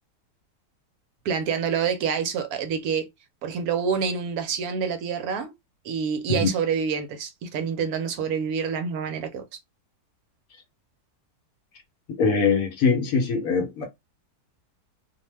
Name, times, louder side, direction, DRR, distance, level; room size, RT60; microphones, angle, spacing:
voice 1, 1.2-3.1 3.4-5.5 5.8-9.4, right 6 dB, 70° right, 1.0 m, -27 dB
voice 2, 12.2-13.9, left 5 dB, 65° left, 1.0 m, -22 dB
2.7 x 2.1 x 3.1 m
omnidirectional pair, 1.8 m